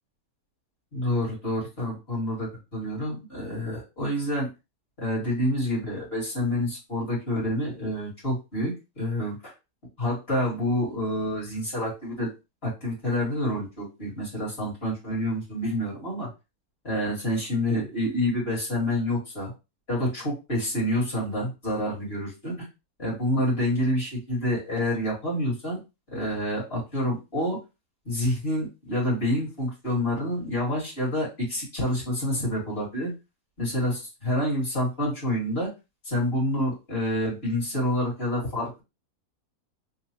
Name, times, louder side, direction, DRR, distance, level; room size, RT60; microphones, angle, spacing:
voice 1, 0.9-4.5 5.0-9.5 10.0-12.3 12.6-16.3 16.8-19.5 19.9-22.7 23.0-25.8 26.1-27.6 28.1-33.1 33.6-35.7 36.0-38.8, left 1 dB, 40° left, -5 dB, 2.4 m, -28 dB
3.9 x 2.9 x 2.9 m, 0.26 s
omnidirectional pair, 1.6 m